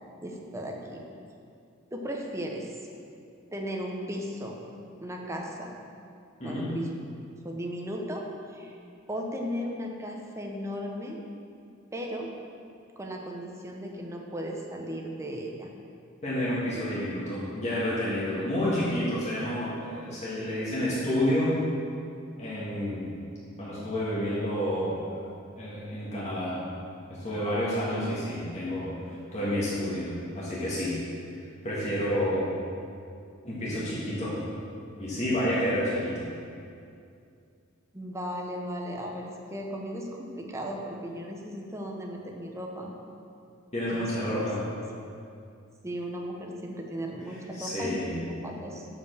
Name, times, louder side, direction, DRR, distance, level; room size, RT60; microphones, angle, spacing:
voice 1, 0.2-1.1 1.9-2.8 3.5-4.6 5.0-5.8 6.4-7.0 7.4-8.7 9.1-11.2 11.9-12.3 13.0-15.7 37.9-42.9 43.9-44.4 45.8-48.0 48.4-48.9, equal, 15° right, 0 dB, 0.9 m, -36 dB
voice 2, 6.4-6.8 16.2-21.6 22.4-23.1 23.6-25.2 25.6-26.6 27.1-28.9 29.3-31.0 31.6-32.5 33.4-34.3 35.0-36.3 43.7-44.6 47.6-48.2, equal, 35° left, -9 dB, 1.8 m, -29 dB
6.9 x 5.4 x 6.7 m, 2.5 s
head